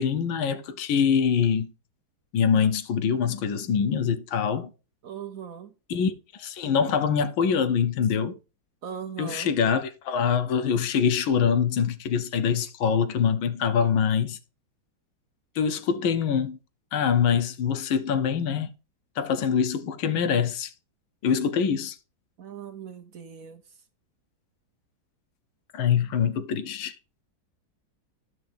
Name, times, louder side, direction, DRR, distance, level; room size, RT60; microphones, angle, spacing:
voice 1, 0.0-1.7 2.3-4.7 5.9-6.1 6.4-8.4 9.2-14.4 15.6-16.6 16.9-18.7 19.2-20.7 21.2-22.0 25.7-26.9, left 7 dB, 85° left, 1.7 m, -24 dB
voice 2, 5.0-5.7 8.8-9.5 12.6-12.7 22.4-23.6, right 8 dB, 55° right, 1.0 m, -39 dB
12.5 x 5.8 x 3.5 m
omnidirectional pair, 2.2 m